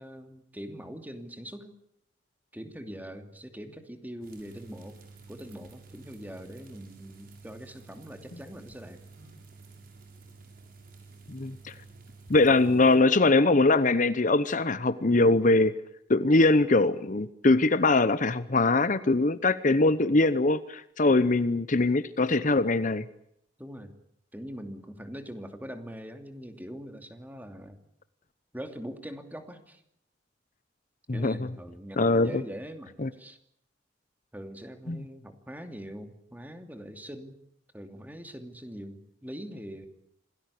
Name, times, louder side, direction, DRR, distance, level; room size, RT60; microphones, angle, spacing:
voice 1, 0.0-1.7 2.5-5.0 5.3-9.0 23.6-23.9 24.3-27.8 28.5-29.8 31.1-32.9 33.2-33.4 34.3-37.4 37.7-39.9, equal, 10° right, 6 dB, 2.7 m, -42 dB
sound 1, 4.2-13.0, right 3 dB, 55° right, 7.0 m, -51 dB
voice 2, 11.3-11.7 12.3-15.7 16.1-23.1 31.1-31.4 32.0-32.3 33.0-33.1 34.9-35.0, left 2 dB, 45° left, 14 dB, 0.9 m, -22 dB
27.0 x 18.5 x 8.4 m, 0.75 s
head